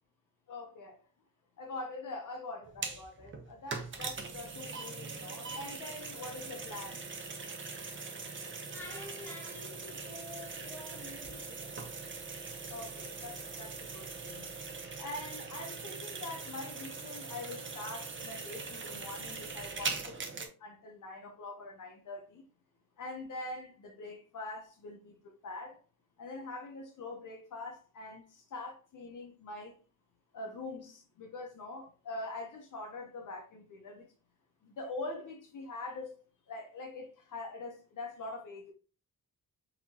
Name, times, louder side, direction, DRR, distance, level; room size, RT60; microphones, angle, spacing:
voice 1, 0.5-1.0 1.6-7.0 12.7-14.5 15.0-22.4 23.0-25.8 26.2-29.8 30.3-34.1 34.6-36.2 36.5-38.7, left 2 dB, 60° left, 0.8 m, -44 dB
sound 1, 2.7-20.5, right 4 dB, 35° right, 0.7 m, -41 dB
voice 2, 7.7-8.1 8.5-11.9, left 2 dB, 5° left, 1.6 m, -49 dB
4.0 x 2.9 x 2.7 m
wide cardioid pair, 120°, 35 cm